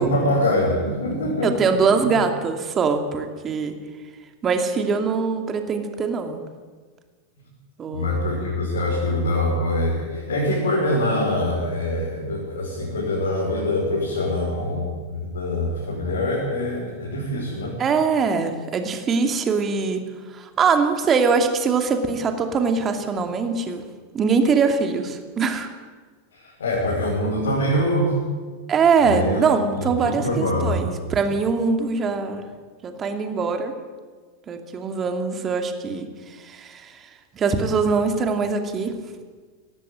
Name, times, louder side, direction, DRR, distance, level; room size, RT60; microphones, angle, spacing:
voice 1, 0.0-1.7 2.0-2.1 7.9-17.8 26.3-28.2 29.0-29.4 29.7-30.9, left 1 dB, 70° left, -3 dB, 5.5 m, -24 dB
voice 2, 1.4-3.7 4.4-6.4 7.8-8.1 17.8-20.0 20.3-23.8 24.1-25.7 28.7-32.4 32.8-33.7 34.5-36.1 36.5-37.0 37.3-38.9, right 5 dB, 25° right, 6 dB, 2.6 m, -22 dB
19.0 x 15.0 x 9.1 m, 1.5 s
figure-of-eight pair, 90°, 0 cm